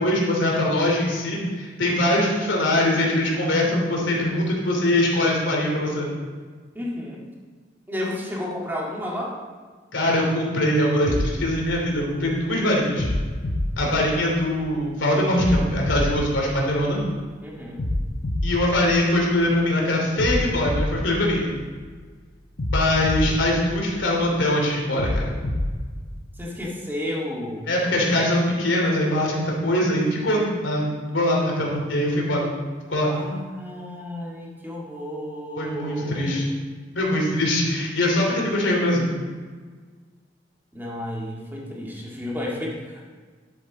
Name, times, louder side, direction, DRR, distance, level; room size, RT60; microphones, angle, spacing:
voice 1, 0.0-6.1 9.9-13.1 13.8-17.0 18.4-21.5 22.7-25.3 27.7-32.5 32.9-33.1 35.6-36.4 36.9-39.1, left 1 dB, 85° left, -1 dB, 2.9 m, -22 dB
voice 2, 6.7-7.2 7.9-9.4 17.4-17.8 26.4-27.7 33.1-36.4 40.7-43.1, left 1 dB, 10° right, -3 dB, 1.9 m, -32 dB
sound 1, 11.1-12.4 13.0-14.7 15.4-17.2 17.8-19.6 20.2-22.0 22.6-24.3 25.0-26.4, left 1 dB, 55° left, 0.9 m, -28 dB
11.0 x 8.1 x 4.1 m, 1.5 s
head